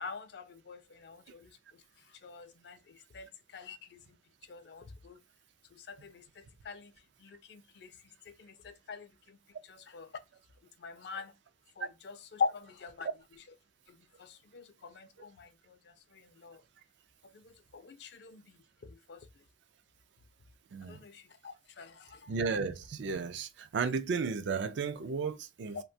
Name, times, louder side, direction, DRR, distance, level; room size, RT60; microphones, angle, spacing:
voice 1, 0.0-1.8 2.2-4.2 4.5-5.2 5.7-6.9 7.2-7.9 8.3-9.4 9.7-10.1 10.8-11.3 11.8-13.1 13.9-16.6 17.2-19.3 20.8-22.3 25.7-25.8, left 5 dB, 60° left, 0.4 m, -43 dB
voice 2, 22.3-25.8, right 5 dB, 65° right, 0.3 m, -34 dB
2.8 x 2.2 x 2.5 m
head